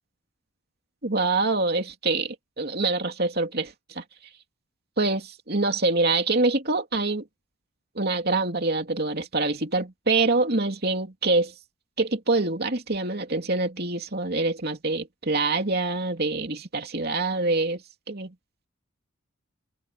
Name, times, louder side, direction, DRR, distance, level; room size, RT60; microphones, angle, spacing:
voice 1, 1.0-4.0 5.0-7.2 7.9-11.5 12.0-17.8 18.1-18.3, right 3 dB, 50° right, 3.0 m, -25 dB
head